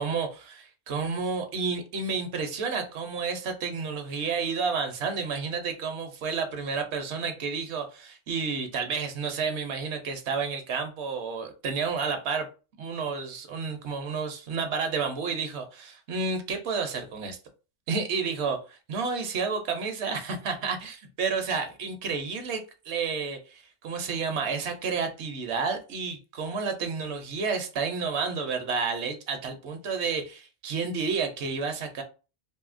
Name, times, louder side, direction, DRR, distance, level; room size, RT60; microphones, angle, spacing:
voice 1, 0.0-12.5 12.8-17.4 17.9-32.0, right 5 dB, 75° right, 6 dB, 0.9 m, -31 dB
2.7 x 2.6 x 2.4 m, 0.33 s
omnidirectional pair, 1.2 m